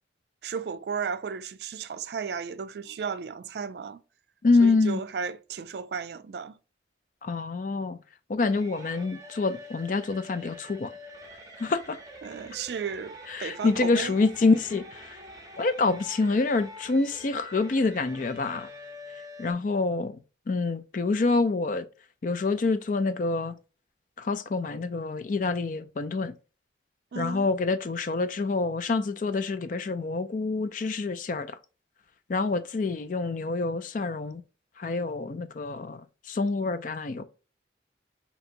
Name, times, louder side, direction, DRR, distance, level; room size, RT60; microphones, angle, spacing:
voice 1, 0.4-4.0 4.6-6.6 12.2-14.1 27.1-27.5, right 6 dB, 65° right, 0.4 m, -34 dB
voice 2, 4.4-5.0 7.2-8.0 8.3-10.9 11.6-12.0 13.3-15.2 15.6-18.7 19.4-20.2 20.5-21.9 22.2-23.6 24.2-26.4 27.2-31.6 32.3-34.4 34.8-37.2, left 3 dB, 45° left, 0.4 m, -26 dB
sound 1, 8.5-19.5, equal, 20° right, 0.7 m, -46 dB
5.5 x 2.9 x 2.6 m
head